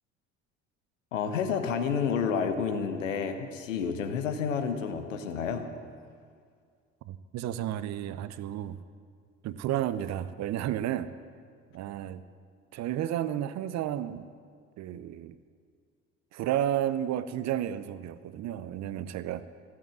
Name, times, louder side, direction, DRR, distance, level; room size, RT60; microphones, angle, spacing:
voice 1, 1.1-5.7, left 6 dB, 80° left, 7 dB, 1.1 m, -30 dB
voice 2, 7.1-8.8 9.4-11.1 11.7-12.2 12.7-14.3 14.8-15.4 16.3-19.4, right 11 dB, 45° right, 14 dB, 0.7 m, -32 dB
14.5 x 8.5 x 7.5 m, 2.1 s
figure-of-eight pair, 55°, 38 cm